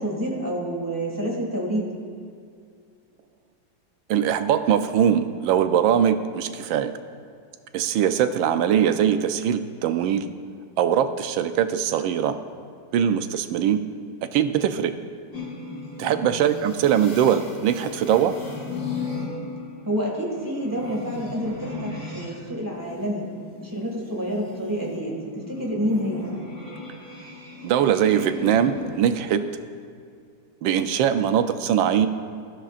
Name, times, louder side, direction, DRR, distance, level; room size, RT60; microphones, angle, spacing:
voice 1, 0.0-1.9 16.2-16.5 19.8-23.3 23.6-26.3, equal, 10° right, -2 dB, 1.9 m, -28 dB
voice 2, 4.1-6.9 7.7-10.3 10.8-12.3 12.9-13.8 14.3-14.9 16.0-18.3 27.6-29.4 30.6-32.1, right 9 dB, 85° right, 10 dB, 1.4 m, -21 dB
sound 1, 15.3-22.3 22.7-29.5, left 3 dB, 65° left, 3.7 m, -37 dB
18.0 x 13.0 x 2.5 m, 2.2 s
omnidirectional pair, 2.1 m